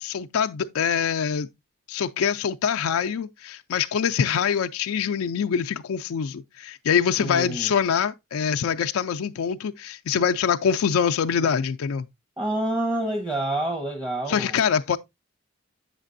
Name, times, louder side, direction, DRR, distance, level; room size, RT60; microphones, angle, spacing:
voice 1, 0.0-1.5 1.9-12.0 14.3-15.0, left 7 dB, 85° left, 0.4 m, -24 dB
voice 2, 7.2-7.7 12.4-14.6, right 1 dB, 15° right, 0.9 m, -27 dB
8.0 x 6.6 x 2.5 m
head